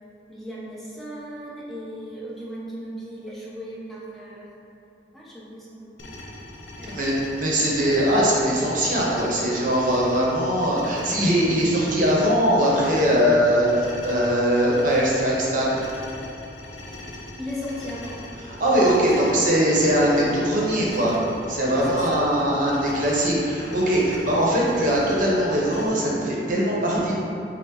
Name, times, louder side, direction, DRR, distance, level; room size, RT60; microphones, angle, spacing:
voice 1, 0.3-4.5 5.1-5.9 6.8-7.6 17.4-18.2 21.9-22.2, equal, ahead, -7 dB, 0.7 m, -37 dB
sound 1, 6.0-25.9, left 1 dB, 80° left, 0.6 m, -40 dB
voice 2, 6.8-15.8 18.4-21.2 21.5-27.2, equal, 50° right, -5 dB, 0.8 m, -21 dB
5.5 x 2.0 x 3.7 m, 2.8 s
head